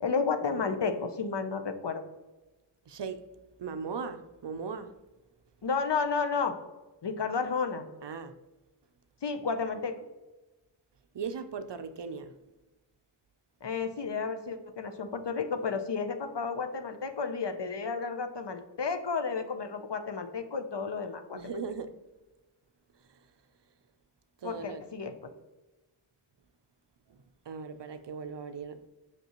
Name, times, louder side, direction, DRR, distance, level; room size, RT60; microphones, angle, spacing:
voice 1, 0.0-2.0 5.6-6.6 7.0-7.9 9.2-10.0 13.6-21.4 24.4-25.3, left 5 dB, 60° left, 0.7 m, -32 dB
voice 2, 2.9-3.2 3.6-4.9 8.0-8.3 11.1-12.3 21.3-21.9 24.4-24.8 27.1-27.2 27.5-28.8, right 5 dB, 60° right, 0.5 m, -38 dB
6.0 x 5.5 x 2.9 m
wide cardioid pair, 45°, 47 cm